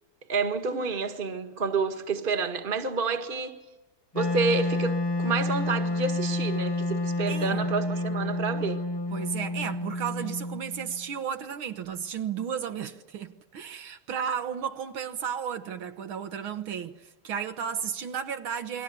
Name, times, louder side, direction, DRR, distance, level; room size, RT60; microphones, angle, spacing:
voice 1, 0.3-3.5 4.1-8.8, right 4 dB, 25° right, 1.6 m, -29 dB
Wind instrument woodwind instrument, 4.1-11.1, left 1 dB, 40° left, 0.3 m, -29 dB
voice 2, 7.2-7.7 9.1-18.8, right 8 dB, 70° right, 1.9 m, -34 dB
28.5 x 23.0 x 6.9 m
omnidirectional pair, 2.4 m